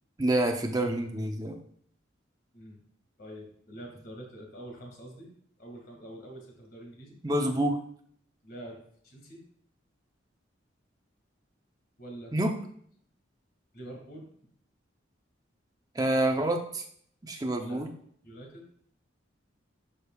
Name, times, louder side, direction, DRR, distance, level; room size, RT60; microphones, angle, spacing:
voice 1, 0.2-1.6 7.2-7.8 12.3-12.5 16.0-16.8 17.2-17.9, right 1 dB, 20° right, 3 dB, 0.7 m, -27 dB
voice 2, 3.2-5.3 5.6-7.2 8.4-8.8 9.0-9.4 12.0-12.3 13.7-14.3 17.5-17.8 18.2-18.7, right 1 dB, 50° left, 0 dB, 2.1 m, -45 dB
11.5 x 5.0 x 2.4 m, 0.62 s
head